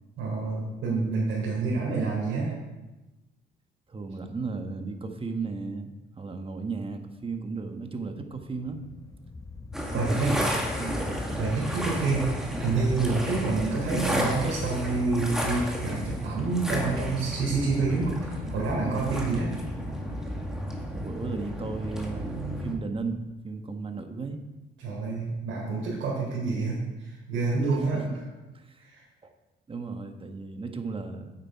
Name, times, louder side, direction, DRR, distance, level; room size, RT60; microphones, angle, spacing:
voice 1, 0.2-2.5 9.9-10.4 11.3-12.2 12.6-19.5 24.8-28.0 28.8-29.0, right 3 dB, 80° right, -7 dB, 3.5 m, -28 dB
voice 2, 3.9-5.9 6.2-8.8 10.0-11.2 20.9-24.4 27.3-28.2 28.5-28.9 29.2-29.3 29.7-31.3, right 4 dB, 25° right, 6 dB, 1.2 m, -35 dB
sound 1, 8.3-20.6, left 3 dB, 15° left, 0.9 m, -42 dB
sound 2, 9.7-22.7, equal, ahead, 1.9 m, -33 dB
8.9 x 8.4 x 4.7 m, 1.1 s
cardioid pair, 90°, 20 cm